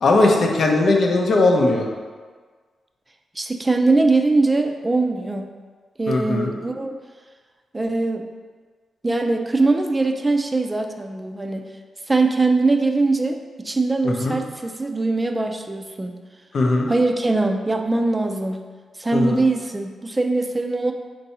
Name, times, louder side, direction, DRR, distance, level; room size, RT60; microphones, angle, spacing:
voice 1, 0.0-1.9 6.1-6.5 14.0-14.4 16.5-16.9 19.1-19.4, left 2 dB, 65° left, 1 dB, 0.6 m, -18 dB
voice 2, 3.4-5.5 6.0-6.9 7.7-8.3 9.0-11.6 12.1-16.2 16.9-18.6 19.0-20.9, right 3 dB, 20° right, 5 dB, 0.4 m, -21 dB
4.4 x 2.6 x 4.1 m, 1.5 s
cardioid pair, 70°, 0 cm